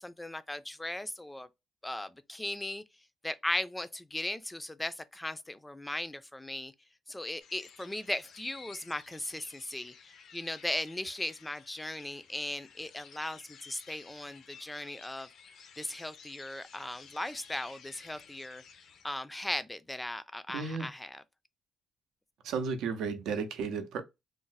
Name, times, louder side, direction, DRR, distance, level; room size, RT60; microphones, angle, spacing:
voice 1, 0.0-1.5 1.8-2.8 3.2-6.7 7.1-9.9 10.3-15.3 15.8-18.6 19.0-21.2, left 1 dB, 10° left, 0.3 m, -37 dB
sound 1, 7.4-19.2, left 6 dB, 70° left, 0.5 m, -54 dB
voice 2, 20.5-20.9 22.4-24.0, right 5 dB, 90° right, 0.5 m, -33 dB
2.5 x 2.0 x 3.8 m
cardioid pair, 105°, 0 cm